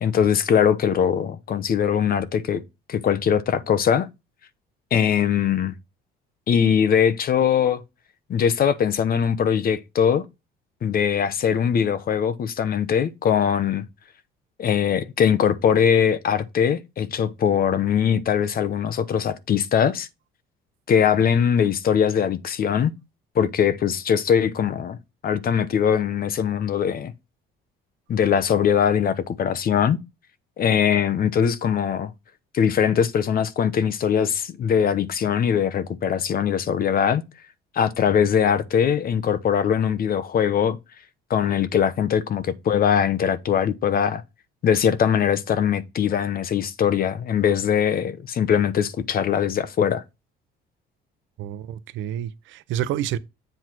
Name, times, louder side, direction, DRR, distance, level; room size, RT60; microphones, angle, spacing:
voice 1, 0.0-2.6 2.9-4.1 4.9-5.7 6.5-7.8 8.3-10.2 10.8-13.8 14.6-20.1 20.9-22.9 23.3-25.0 25.2-27.1 28.1-30.0 30.6-32.1 32.5-37.2 37.7-40.8 41.3-44.2 44.6-50.0, left 8 dB, 45° left, 1.0 m, -21 dB
voice 2, 51.4-53.2, right 11 dB, 75° right, 0.8 m, -29 dB
8.0 x 4.4 x 4.5 m
cardioid pair, 115°, 20 cm